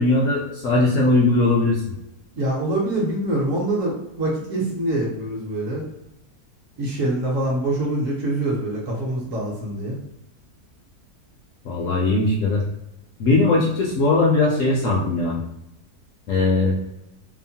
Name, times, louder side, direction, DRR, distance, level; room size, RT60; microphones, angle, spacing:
voice 1, 0.0-1.8 11.7-12.6 13.2-15.4 16.3-16.8, left 2 dB, 70° left, -2 dB, 0.8 m, -19 dB
voice 2, 2.4-5.8 6.8-10.0, right 1 dB, 60° right, -3 dB, 1.0 m, -25 dB
2.8 x 2.1 x 2.7 m, 0.86 s
omnidirectional pair, 1.7 m